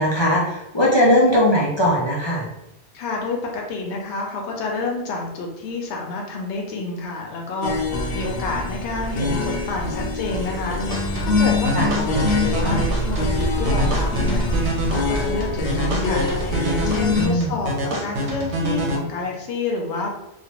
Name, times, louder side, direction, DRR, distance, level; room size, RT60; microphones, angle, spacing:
voice 1, 0.0-2.4 11.7-11.9 17.1-17.5, equal, 35° left, -6 dB, 0.4 m, -19 dB
voice 2, 2.9-7.7 8.1-12.0 12.3-20.2, left 3 dB, 85° left, 0 dB, 0.9 m, -29 dB
sound 1, 7.6-17.3, left 2 dB, 65° left, 0.8 m, -24 dB
sound 2, 10.9-19.0, right 1 dB, 85° right, 1.0 m, -27 dB
3.1 x 2.1 x 2.9 m, 0.91 s
omnidirectional pair, 1.1 m